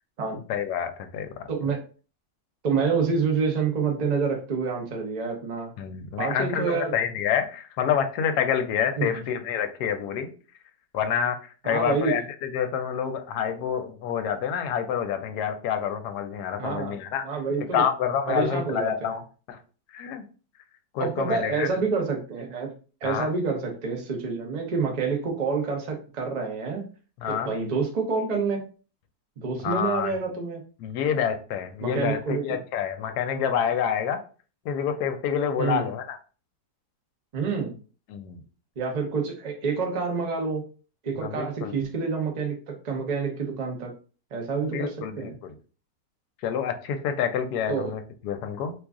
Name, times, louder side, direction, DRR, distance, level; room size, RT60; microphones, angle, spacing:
voice 1, 0.5-1.4 5.8-10.3 10.9-11.4 11.6-17.2 17.7-19.2 19.5-19.6 19.9-20.2 20.9-21.7 23.0-23.3 27.2-27.5 29.6-30.1 30.8-34.2 34.6-36.2 38.1-38.4 41.1-41.9 44.6-45.5 46.4-48.7, left 8 dB, 75° left, 7 dB, 1.1 m, -28 dB
voice 2, 1.5-1.8 2.6-5.7 6.2-6.9 9.0-9.2 11.6-12.2 16.6-16.9 17.2-17.8 18.3-19.2 21.0-22.7 23.0-26.9 27.3-28.6 29.4-30.6 31.8-32.6 35.6-35.9 37.3-37.7 38.8-40.7 41.0-43.9 44.3-45.3 47.7-47.9, right 5 dB, 80° right, 2 dB, 0.3 m, -28 dB
3.0 x 2.3 x 3.5 m, 0.38 s
omnidirectional pair, 1.9 m